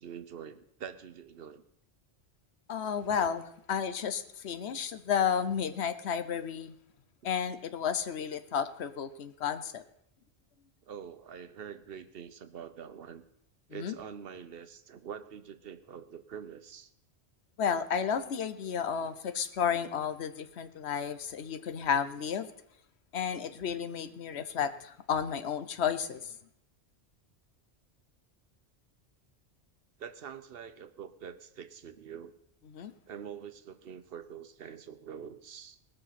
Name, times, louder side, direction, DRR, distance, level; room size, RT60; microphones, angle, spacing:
voice 1, 0.0-1.6 10.8-13.2 13.7-16.9 30.0-32.3 33.1-35.8, right 8 dB, 60° right, 11 dB, 1.0 m, -45 dB
voice 2, 2.7-6.8 7.2-9.8 13.7-13.9 17.6-22.5 23.1-26.3 32.7-32.9, left 7 dB, 70° left, 12 dB, 1.1 m, -32 dB
19.0 x 6.5 x 5.8 m, 0.72 s
omnidirectional pair, 1.1 m